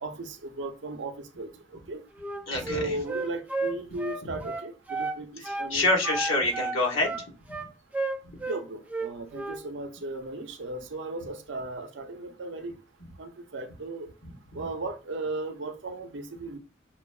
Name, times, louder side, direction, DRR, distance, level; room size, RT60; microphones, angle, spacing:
voice 1, 0.0-2.0 2.7-5.3 5.6-5.9 6.3-6.4 8.5-12.7 13.2-14.1 14.5-16.6, right 2 dB, 65° right, 0.5 m, -36 dB
Wind instrument woodwind instrument, 2.2-5.2 5.4-5.7 6.0-8.6 8.9-9.6, right 3 dB, 5° right, 0.3 m, -32 dB
voice 2, 2.5-3.0 5.4-7.2 8.2-8.4 14.3-14.4, left 2 dB, 80° left, 1.2 m, -27 dB
5.9 x 2.1 x 2.3 m
head